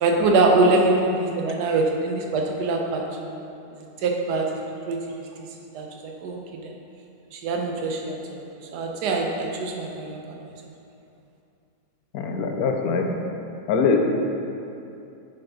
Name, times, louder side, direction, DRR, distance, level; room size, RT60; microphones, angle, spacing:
voice 1, 0.0-3.4 3.8-4.5 4.9-5.0 5.7-5.9 6.2-6.7 7.3-8.4 8.7-10.5, right 2 dB, 90° right, 1 dB, 1.3 m, -23 dB
voice 2, 12.1-13.1 13.7-14.0, left 5 dB, 70° left, 3 dB, 1.1 m, -22 dB
7.4 x 4.6 x 3.9 m, 2.7 s
omnidirectional pair, 1.7 m